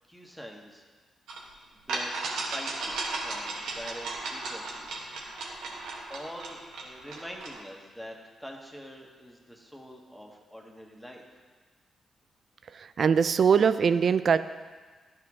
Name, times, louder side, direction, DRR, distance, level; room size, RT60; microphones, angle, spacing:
voice 1, 0.1-0.8 1.9-5.0 5.7-11.4, equal, ahead, 0 dB, 1.6 m, -45 dB
sound 1, 1.3-1.4 1.9-7.6, right 3 dB, 80° right, 1.1 m, -35 dB
voice 2, 12.6-14.4, right 6 dB, 60° right, 13 dB, 0.3 m, -22 dB
12.0 x 4.6 x 3.7 m, 1.4 s
hypercardioid pair, 45°, 0 cm